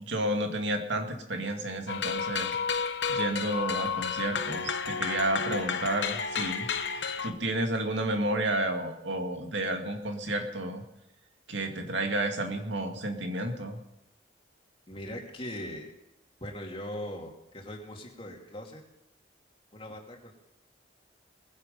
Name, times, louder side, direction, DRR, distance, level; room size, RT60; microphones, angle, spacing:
voice 1, 0.0-2.5 3.1-10.8 11.5-13.8, right 1 dB, 80° right, 4 dB, 2.2 m, -31 dB
sound 1, 1.9-7.3, left 6 dB, 70° left, 1.0 m, -31 dB
voice 2, 14.9-15.9 16.4-18.8 19.7-20.3, left 1 dB, 30° left, 1 dB, 2.7 m, -40 dB
20.0 x 11.0 x 5.4 m, 0.88 s
head